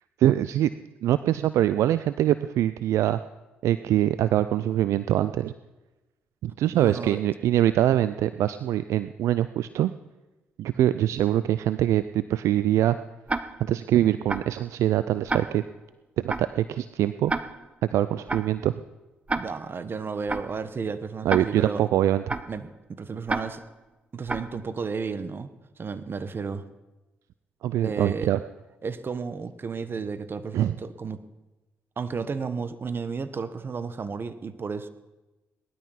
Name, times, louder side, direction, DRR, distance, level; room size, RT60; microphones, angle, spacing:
voice 1, 0.2-0.7 1.0-3.2 3.6-5.5 6.4-9.9 10.6-13.0 13.6-15.6 16.2-17.3 17.9-18.8 21.2-22.4 27.6-28.4 30.5-30.8, right 12 dB, 70° right, 14 dB, 0.5 m, -23 dB
voice 2, 6.7-7.2 19.4-21.9 22.5-23.6 24.1-25.5 25.8-26.6 27.8-28.3 28.8-31.2 32.0-34.9, right 5 dB, 45° right, 12 dB, 1.4 m, -33 dB
Tick-tock, 13.3-13.8 14.3-14.6 15.3-15.8 16.3-16.6 17.3-17.8 18.3-18.6 19.3-19.8 20.3-20.6 21.3-21.8 22.3-22.6 23.3-23.8 24.3-24.6, right 2 dB, 25° right, 1.1 m, -31 dB
19.0 x 12.5 x 5.8 m, 1.1 s
hypercardioid pair, 45°, 5 cm